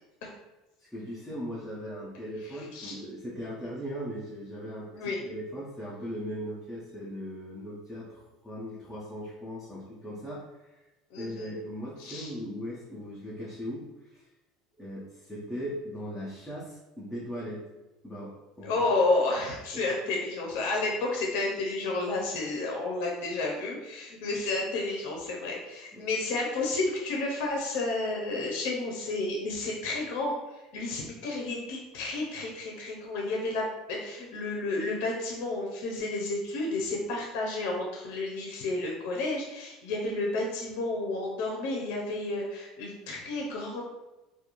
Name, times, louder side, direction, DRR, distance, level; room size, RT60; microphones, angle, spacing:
voice 1, 0.8-10.8 11.2-14.3 14.8-17.6 18.0-18.8 25.9-26.0, equal, ahead, -8 dB, 0.4 m, -39 dB
voice 2, 2.4-3.0 4.9-5.3 11.1-11.5 12.0-12.3 18.6-43.8, left 2 dB, 65° left, -1 dB, 0.5 m, -31 dB
2.4 x 2.1 x 2.9 m, 1.0 s
cardioid pair, 175°, 0 cm